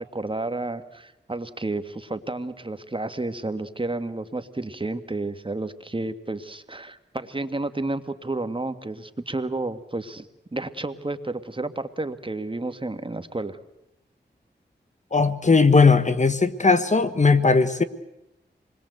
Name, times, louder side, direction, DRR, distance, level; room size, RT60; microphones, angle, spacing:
voice 1, 0.0-13.6, right 2 dB, 30° right, 10 dB, 1.8 m, -31 dB
voice 2, 15.1-17.8, left 4 dB, 40° left, 11 dB, 1.4 m, -18 dB
27.5 x 21.0 x 8.0 m, 0.87 s
cardioid pair, 50°, 18 cm